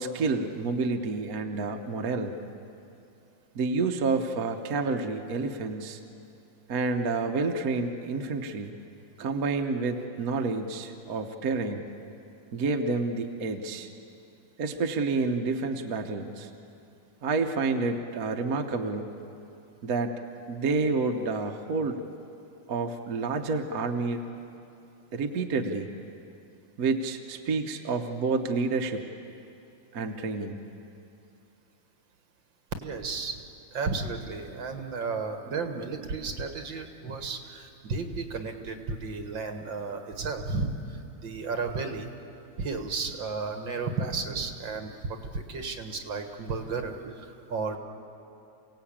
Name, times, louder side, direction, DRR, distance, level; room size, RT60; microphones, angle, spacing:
voice 1, 0.0-2.3 3.5-6.0 6.7-8.7 9.2-11.9 12.5-13.9 14.6-16.5 17.2-19.2 19.8-20.2 20.5-22.0 22.7-24.3 25.1-25.9 26.8-29.1 29.9-30.6, right 3 dB, 50° right, 4 dB, 1.4 m, -29 dB
voice 2, 32.8-33.4 33.7-42.1 42.6-47.8, right 4 dB, 70° right, 6 dB, 2.3 m, -33 dB
28.5 x 17.5 x 8.7 m, 2.7 s
omnidirectional pair, 2.2 m